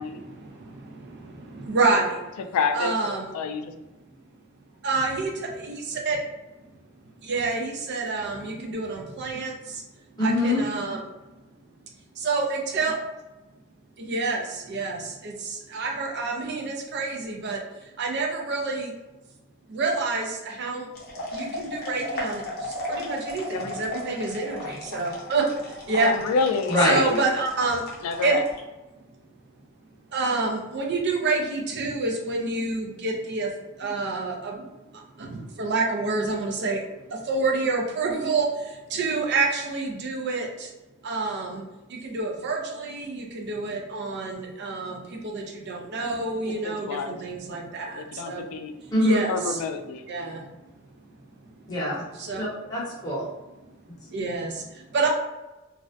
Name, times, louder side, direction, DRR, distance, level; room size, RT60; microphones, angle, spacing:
voice 1, 0.0-2.2 2.7-3.3 4.8-6.2 7.2-9.8 10.2-11.0 12.2-13.0 14.0-18.9 19.7-20.9 21.3-26.2 26.8-27.9 28.2-28.4 30.1-33.5 33.8-34.7 34.9-40.7 41.0-48.5 48.7-49.6 50.1-50.5 52.1-52.4 54.1-55.1, right 3 dB, 55° right, 0 dB, 0.5 m, -28 dB
voice 2, 2.5-2.9 3.3-3.7 23.5-23.7 26.0-27.2 28.0-28.4 46.5-47.2 47.9-48.8 49.3-50.1, left 5 dB, 85° left, 11 dB, 0.3 m, -28 dB
voice 3, 10.2-10.6 26.7-27.0 48.9-49.2 51.7-52.0 52.4-53.3, left 1 dB, 20° left, -7 dB, 0.9 m, -23 dB
sound 1, 20.9-28.6, left 2 dB, 45° left, 0.6 m, -35 dB
2.4 x 2.1 x 2.5 m, 1.1 s
head